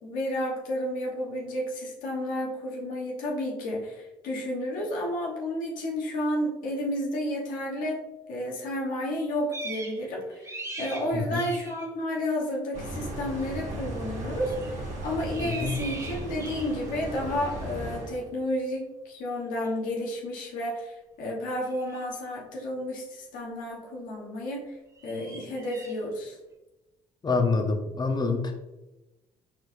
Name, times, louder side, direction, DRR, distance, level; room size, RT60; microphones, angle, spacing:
voice 1, 0.0-8.0 8.3-14.7 15.0-24.7 25.0-26.4, left 1 dB, 75° left, -2 dB, 1.2 m, -31 dB
Fox Mating Call, 9.5-10.1 10.3-11.9 14.4-14.8 15.2-16.9 19.6-19.7 21.6-22.0 24.9-26.0, right 3 dB, 20° right, 1.0 m, -41 dB
voice 2, 11.1-11.4 15.4-15.8 27.2-28.5, left 4 dB, 30° left, 4 dB, 0.9 m, -26 dB
sound 1, 12.7-18.3, right 1 dB, 60° right, 1.6 m, -36 dB
4.5 x 4.3 x 2.6 m, 1.0 s
supercardioid pair, 65°, 14 cm